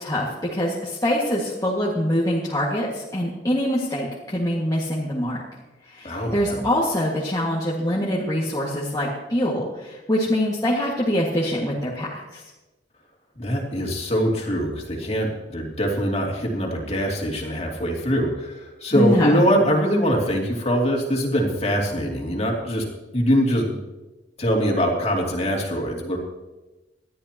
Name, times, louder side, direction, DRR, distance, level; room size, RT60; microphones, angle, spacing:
voice 1, 0.0-5.4 5.9-12.4 19.0-19.4, equal, 20° left, -5 dB, 1.9 m, -24 dB
voice 2, 6.0-6.6 13.4-22.8 23.1-23.8 24.4-26.2, equal, 35° left, -1 dB, 2.8 m, -23 dB
20.0 x 13.5 x 3.0 m, 1.1 s
head